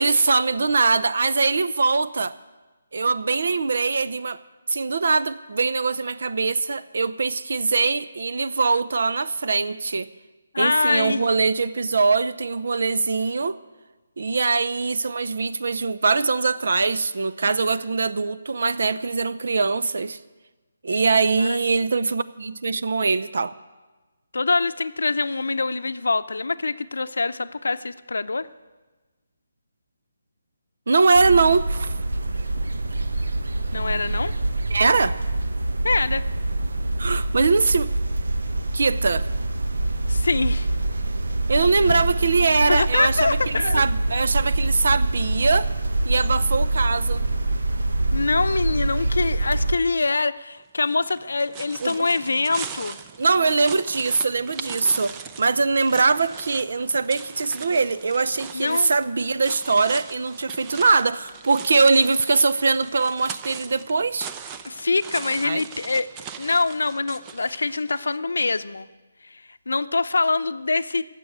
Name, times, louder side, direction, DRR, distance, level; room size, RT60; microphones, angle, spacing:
voice 1, 0.0-2.3 2.9-4.4 4.7-10.1 10.6-13.6 14.2-20.2 20.8-23.5 30.9-32.0 34.7-35.2 37.0-37.9 38.7-39.3 41.5-45.7 46.0-47.3 51.8-52.1 53.2-64.3 65.4-65.6, right 4 dB, 65° right, 13 dB, 0.7 m, -22 dB
voice 2, 10.5-11.3 21.5-21.6 24.3-28.5 33.7-34.3 35.8-36.3 40.1-40.7 41.9-42.0 42.7-43.8 48.1-53.0 58.5-58.9 64.6-66.1 66.4-68.9 69.3-71.0, left 3 dB, 85° left, 13 dB, 0.6 m, -24 dB
sound 1, 31.1-49.8, right 2 dB, 85° right, 0.9 m, -25 dB
sound 2, 50.9-68.1, right 7 dB, 15° right, 0.5 m, -40 dB
16.0 x 7.6 x 9.3 m, 1.2 s
hypercardioid pair, 165°, 0 cm